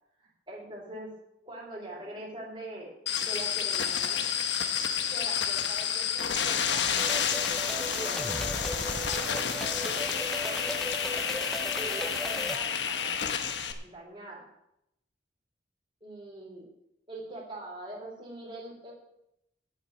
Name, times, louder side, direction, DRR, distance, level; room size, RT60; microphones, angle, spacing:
voice 1, 0.2-1.1 1.5-2.9 3.2-4.3 5.1-6.9 7.7-9.6 10.1-10.7 11.6-13.3 13.8-14.4 16.0-16.7 17.1-18.9, right 1 dB, 30° right, -4 dB, 3.7 m, -43 dB
sound 1, 3.1-13.7, left 7 dB, 85° left, 1.1 m, -30 dB
sound 2, 7.0-12.6, equal, ahead, 0.7 m, -36 dB
8.5 x 8.1 x 9.0 m, 0.82 s
head